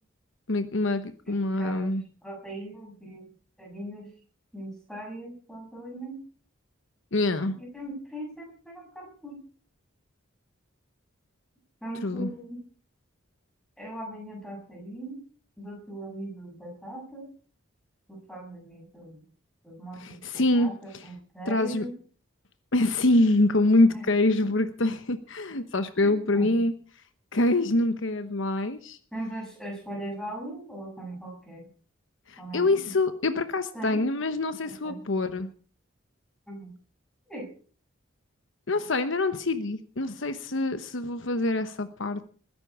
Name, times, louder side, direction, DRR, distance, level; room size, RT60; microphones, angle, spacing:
voice 1, 0.5-2.0 7.1-7.6 12.0-12.3 20.0-21.1 21.5-21.9 22.7-26.7 27.3-29.0 32.3-35.5 38.7-42.3, left 2 dB, 65° left, 10 dB, 1.0 m, -25 dB
voice 2, 2.2-3.2 3.6-4.1 4.5-6.2 7.6-9.4 11.8-12.6 13.8-15.2 15.6-17.3 18.1-19.2 19.6-21.9 23.9-24.0 26.0-26.5 29.1-31.7 32.4-32.8 33.7-34.0 34.6-35.0 36.5-36.7 37.3-37.5, right 1 dB, 5° left, -1 dB, 6.7 m, -39 dB
20.5 x 10.5 x 4.8 m, 0.42 s
head